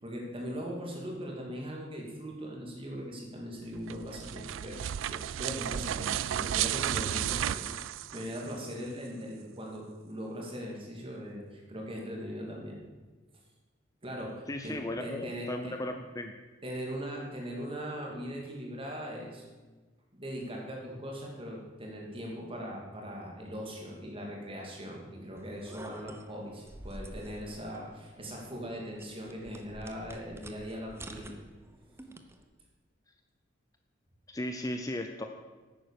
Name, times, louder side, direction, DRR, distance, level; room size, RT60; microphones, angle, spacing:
voice 1, 0.0-4.8 5.0-7.7 8.1-12.8 14.0-15.8 16.6-19.4 20.1-31.4, equal, 30° right, -1 dB, 2.6 m, -40 dB
sound 1, 3.8-8.7, right 11 dB, 85° right, 0.3 m, -33 dB
voice 2, 14.5-16.3 34.3-35.3, left 1 dB, 20° left, 5 dB, 0.6 m, -36 dB
sound 2, 25.3-32.4, right 1 dB, 15° right, 0.9 m, -49 dB
10.0 x 9.1 x 6.6 m, 1.3 s
head